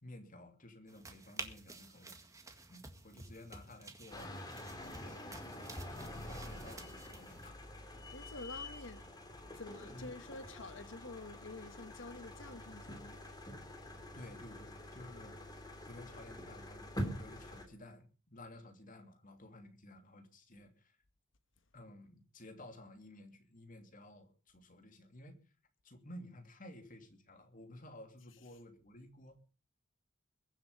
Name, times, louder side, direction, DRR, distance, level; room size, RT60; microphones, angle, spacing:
voice 1, 0.0-2.2 2.7-7.6 9.9-10.3 14.1-21.0 21.7-25.4 25.8-29.4, left 1 dB, 45° left, 2.8 m, -54 dB
sound 1, 0.9-7.5, right 2 dB, 15° right, 1.8 m, -51 dB
sound 2, 4.1-17.7, left 1 dB, 20° left, 2.8 m, -46 dB
voice 2, 8.1-9.1 9.5-13.2, left 2 dB, 70° left, 1.3 m, -48 dB
22.0 x 7.5 x 6.7 m
head